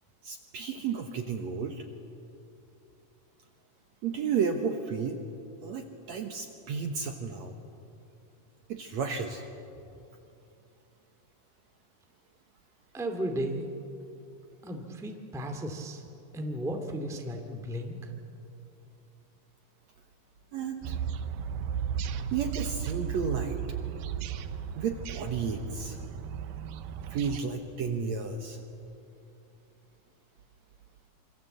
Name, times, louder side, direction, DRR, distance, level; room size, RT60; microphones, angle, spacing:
voice 1, 0.2-1.9 4.0-5.2 5.6-7.6 8.7-9.4 20.5-21.0 22.3-23.6 24.8-26.0 27.1-28.6, right 6 dB, 60° right, 5 dB, 2.1 m, -32 dB
voice 2, 12.9-13.7 14.6-16.0 16.3-18.1, right 1 dB, ahead, 3 dB, 1.5 m, -34 dB
sound 1, 20.8-27.4, right 8 dB, 85° right, 2.7 m, -35 dB
27.0 x 25.5 x 7.9 m, 2.7 s
omnidirectional pair, 4.2 m